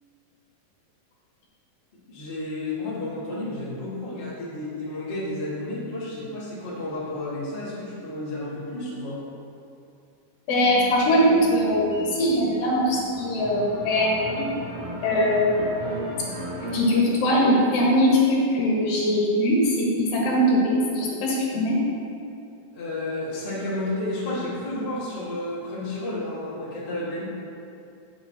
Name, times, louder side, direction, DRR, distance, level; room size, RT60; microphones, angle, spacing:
voice 1, 2.1-9.2 22.7-27.2, left 1 dB, 30° left, -8 dB, 0.9 m, -31 dB
voice 2, 10.5-14.5 15.0-15.5 16.7-21.8, equal, 80° left, -4 dB, 3.0 m, -21 dB
sound 1, 10.6-16.8, right 1 dB, 25° right, 0.9 m, -36 dB
9.7 x 6.6 x 2.8 m, 2.5 s
omnidirectional pair, 4.1 m